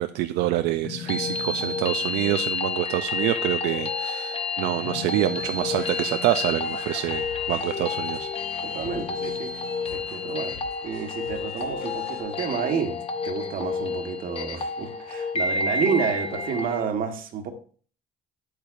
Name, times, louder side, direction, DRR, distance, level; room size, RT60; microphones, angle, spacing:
voice 1, 0.0-8.3, right 14 dB, 85° right, 0.4 m, -26 dB
sound 1, 0.8-16.8, left 4 dB, 35° left, 0.9 m, -30 dB
sound 2, 5.4-12.2, left 5 dB, 65° left, 1.9 m, -44 dB
voice 2, 8.6-9.5 9.9-10.6 10.8-13.0 13.2-17.5, right 6 dB, 55° right, 1.3 m, -29 dB
8.8 x 8.3 x 2.5 m
cardioid pair, 110°, 17 cm